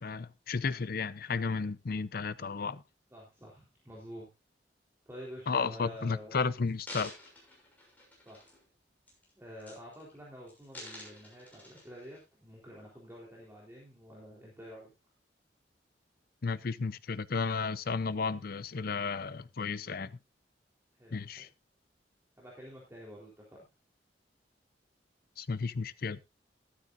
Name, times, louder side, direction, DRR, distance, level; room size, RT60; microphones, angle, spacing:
voice 1, 0.0-2.8 5.5-7.1 16.4-20.2 21.1-21.5 25.4-26.2, left 4 dB, 55° left, 0.6 m, -33 dB
voice 2, 3.1-4.3 5.1-6.3 8.3-8.5 9.4-14.9 21.0-21.5 22.4-23.7, equal, 15° right, 3.7 m, -48 dB
sound 1, 6.0-6.1 6.6-8.7 9.1-9.3 9.6-10.2 10.5-12.2 12.8-12.9, left 1 dB, 10° left, 6.3 m, -49 dB
13.0 x 13.0 x 2.6 m
head